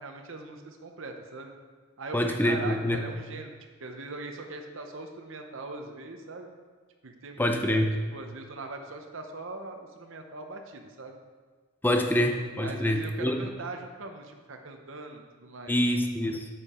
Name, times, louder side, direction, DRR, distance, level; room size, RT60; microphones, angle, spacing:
voice 1, 0.0-1.5 2.0-3.5 3.8-6.5 7.0-7.8 8.1-11.2 12.1-12.3 12.6-15.7, right 3 dB, 60° right, 4 dB, 0.8 m, -41 dB
voice 2, 2.1-3.0 7.4-7.9 11.8-13.5 15.7-16.5, left 1 dB, 10° left, 4 dB, 0.6 m, -26 dB
8.6 x 7.2 x 4.3 m, 1.5 s
head